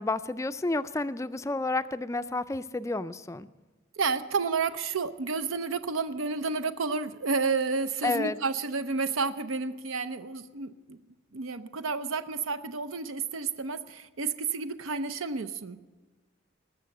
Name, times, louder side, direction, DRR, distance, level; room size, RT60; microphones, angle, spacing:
voice 1, 0.0-3.5 8.0-8.4, left 2 dB, 15° left, 13 dB, 0.4 m, -30 dB
voice 2, 4.0-11.0 11.3-15.8, right 4 dB, 85° right, 10 dB, 0.6 m, -31 dB
19.5 x 7.1 x 7.7 m, 1.3 s
head